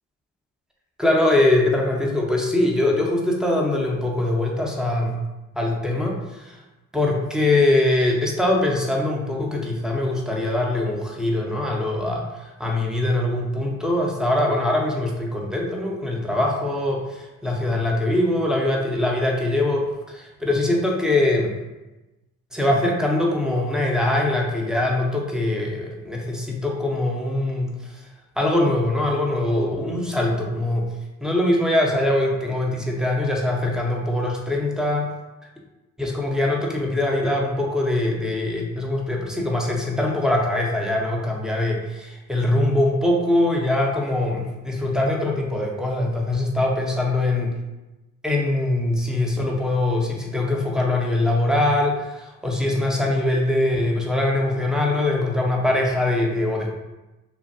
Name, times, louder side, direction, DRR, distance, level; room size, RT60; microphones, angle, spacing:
voice 1, 1.0-5.2 5.6-6.6 6.9-21.5 22.5-28.0 28.4-30.9 31.2-35.1 36.0-47.5 48.2-56.7, left 1 dB, ahead, -1 dB, 0.8 m, -22 dB
3.2 x 2.5 x 2.7 m, 1.1 s
supercardioid pair, 45°, 39 cm